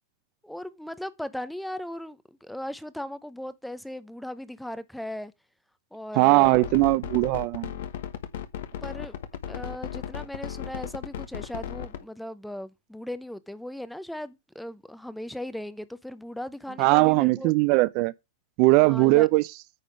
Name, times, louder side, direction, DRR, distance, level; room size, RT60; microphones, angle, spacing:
voice 1, 0.4-5.3 5.9-6.6 8.8-9.2 9.5-17.5 18.8-19.3, left 1 dB, ahead, 0.6 m, -37 dB
voice 2, 6.1-7.7 16.8-18.1 18.6-19.4, right 22 dB, 45° right, 0.4 m, -20 dB
sound 1, 6.4-12.0, left 9 dB, 65° left, 1.3 m, -35 dB
9.3 x 3.6 x 6.6 m
hypercardioid pair, 140°, 0 cm